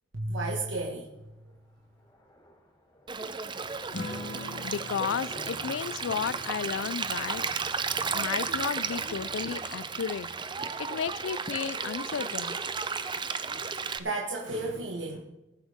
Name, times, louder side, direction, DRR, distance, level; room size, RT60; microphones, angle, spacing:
voice 1, 0.1-1.1 14.0-15.2, right 2 dB, 80° right, -1 dB, 1.8 m, -32 dB
sound 1, 0.8-14.6, equal, 25° left, 3.0 m, -51 dB
Stream, 3.1-14.0, right 5 dB, 25° right, 0.7 m, -34 dB
Acoustic guitar / Strum, 3.9-8.8, left 2 dB, 70° left, 1.4 m, -43 dB
voice 2, 4.6-7.4 8.1-10.3 10.8-12.6, left 7 dB, 85° left, 19 dB, 0.4 m, -33 dB
21.5 x 8.1 x 3.6 m, 0.97 s
head